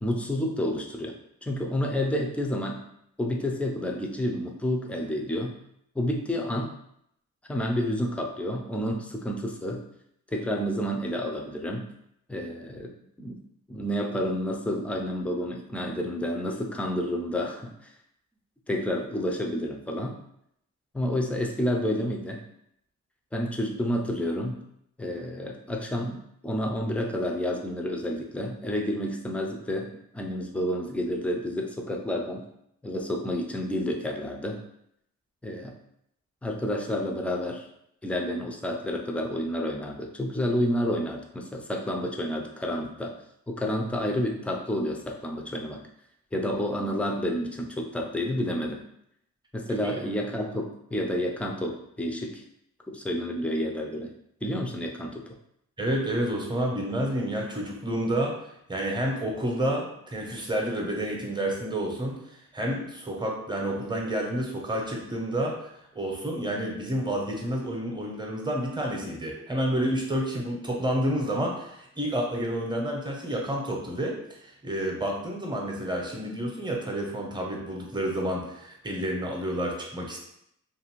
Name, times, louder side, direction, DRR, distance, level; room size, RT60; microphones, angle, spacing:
voice 1, 0.0-1.2 1.4-2.8 3.2-5.6 6.0-6.7 7.5-9.8 10.3-11.9 12.3-12.9 13.2-13.4 13.7-17.9 18.7-20.2 20.9-22.4 23.3-24.6 25.0-32.4 32.8-34.6 35.4-35.7 36.4-37.7 38.0-43.2 43.5-45.8 46.3-48.8 49.5-52.4 52.9-54.1 54.4-55.2, left 1 dB, 5° left, 1 dB, 0.4 m, -30 dB
voice 2, 55.8-58.4 58.7-62.2 62.5-65.7 65.9-80.2, right 1 dB, 15° right, 0 dB, 0.7 m, -29 dB
2.6 x 2.5 x 3.0 m, 0.75 s
cardioid pair, 80°, 30 cm